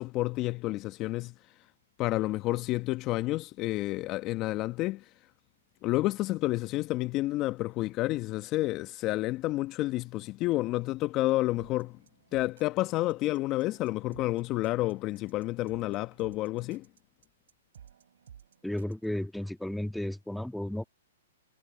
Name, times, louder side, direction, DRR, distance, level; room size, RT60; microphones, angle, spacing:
voice 1, 0.0-1.3 2.0-5.1 5.8-12.0 12.3-16.9, left 18 dB, 35° left, 1.0 m, -30 dB
sound 1, 11.6-19.1, right 9 dB, 70° right, 4.3 m, -55 dB
voice 2, 18.6-20.8, left 1 dB, ahead, 1.7 m, -33 dB
hypercardioid pair, 125°, 0 cm